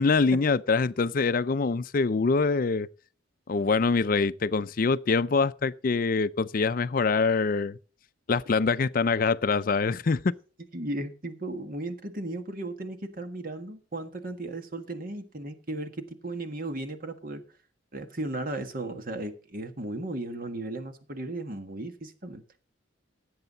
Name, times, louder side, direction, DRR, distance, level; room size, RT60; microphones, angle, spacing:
voice 1, 0.0-2.9 3.5-7.8 8.3-10.2, left 4 dB, 45° left, 0.4 m, -24 dB
voice 2, 10.7-17.4 17.9-22.4, right 2 dB, 45° right, 1.5 m, -35 dB
16.5 x 7.9 x 4.0 m
head